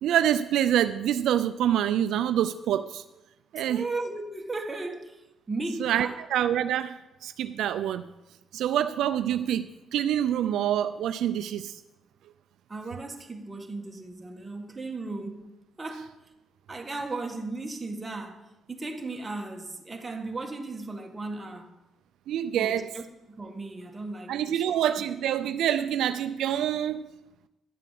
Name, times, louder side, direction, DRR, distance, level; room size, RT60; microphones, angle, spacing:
voice 1, 0.0-3.0 3.5-3.8 5.8-8.0 8.5-9.6 9.9-11.7 22.3-22.8 24.3-27.0, right 10 dB, 80° right, 0.4 m, -26 dB
voice 2, 3.7-5.2 5.5-6.2 12.7-15.5 15.8-16.1 16.7-18.4 18.7-21.7 22.5-24.6, right 2 dB, 20° right, 1.8 m, -36 dB
11.0 x 7.5 x 7.6 m
cardioid pair, 90°, 0 cm